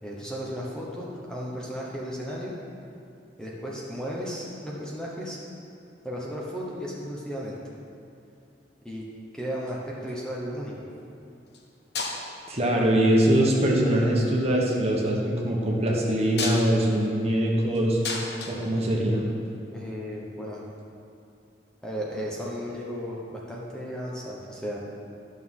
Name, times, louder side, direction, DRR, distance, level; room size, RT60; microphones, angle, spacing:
voice 1, 0.0-2.5 3.4-5.4 6.0-7.6 8.8-9.0 9.3-10.9 19.7-20.6 21.8-24.8, equal, 5° left, -5 dB, 1.0 m, -34 dB
sound 1, 9.7-10.3 11.5-11.6 11.9-12.6 13.5-14.0 16.1-19.5 20.8-20.9, left 3 dB, 65° left, 1.0 m, -35 dB
voice 2, 12.5-18.0 18.5-19.2, right 1 dB, 35° right, -2 dB, 1.2 m, -23 dB
11.5 x 6.4 x 3.7 m, 2.6 s
head